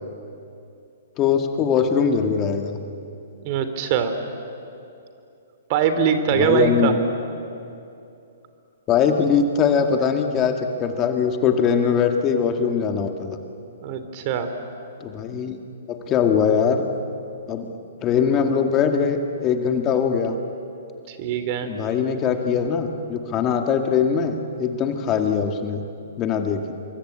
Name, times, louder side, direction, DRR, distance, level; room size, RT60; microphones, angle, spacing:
voice 1, 1.2-2.8 6.4-7.0 8.9-13.4 15.0-15.6 15.9-16.9 17.5-17.7 18.0-20.3 21.6-25.8 26.2-26.7, left 6 dB, 25° left, 5 dB, 2.0 m, -21 dB
voice 2, 3.4-4.1 5.7-7.0 13.8-14.5 21.1-21.7, right 7 dB, 40° right, 9 dB, 2.9 m, -22 dB
27.0 x 23.0 x 8.9 m, 2.7 s
hypercardioid pair, 130°, 0 cm